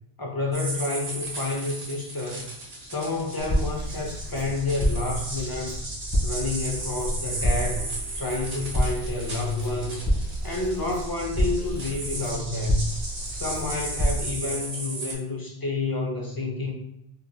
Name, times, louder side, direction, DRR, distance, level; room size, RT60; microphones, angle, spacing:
voice 1, 0.2-2.5 2.8-5.8 6.2-10.1 10.4-12.9 13.3-16.7, left 3 dB, 30° left, -1 dB, 0.4 m, -29 dB
sound 1, 0.5-15.1, right 2 dB, 40° right, 0.8 m, -36 dB
Crackle, 3.4-14.3, equal, 10° left, 1.2 m, -29 dB
sound 2, 7.8-8.9 9.2-9.3 9.7-11.2 11.6-13.0 13.5-15.3, left 3 dB, 80° left, 1.0 m, -51 dB
4.1 x 3.2 x 2.2 m, 0.77 s
omnidirectional pair, 1.2 m